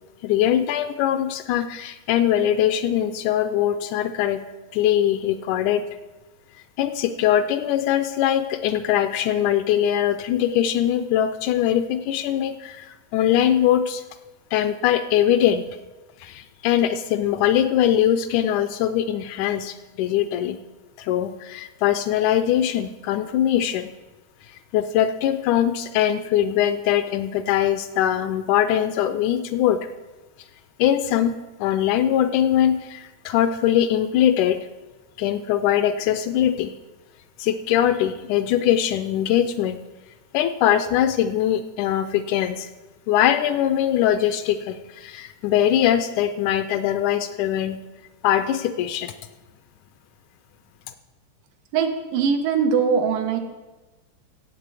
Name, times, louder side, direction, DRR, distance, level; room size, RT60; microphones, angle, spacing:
voice 1, 0.2-4.4 4.7-5.8 6.8-14.0 14.5-15.6 16.2-20.6 21.0-23.9 24.4-29.8 30.8-31.3 31.6-34.6 35.2-36.7 37.4-39.8 40.3-42.7 43.1-47.8 48.2-49.1, left 11 dB, 80° left, 11 dB, 1.8 m, -22 dB
voice 2, 51.7-53.4, right 6 dB, 85° right, 6 dB, 2.7 m, -21 dB
16.0 x 7.5 x 4.7 m, 1.2 s
omnidirectional pair, 3.8 m